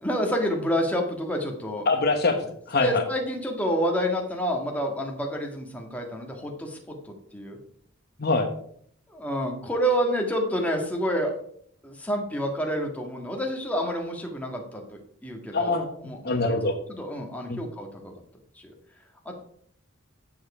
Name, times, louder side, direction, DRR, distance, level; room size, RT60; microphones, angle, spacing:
voice 1, 0.0-1.9 2.8-7.6 9.1-11.3 11.8-15.8 16.0-16.5 16.9-18.1 18.5-18.7 19.2-19.3, equal, 5° left, 1 dB, 1.6 m, -28 dB
voice 2, 1.9-3.0 8.2-8.5 15.5-15.9 16.2-16.8 17.5-17.6, left 3 dB, 50° left, 5 dB, 1.1 m, -24 dB
9.3 x 7.3 x 4.8 m, 0.64 s
head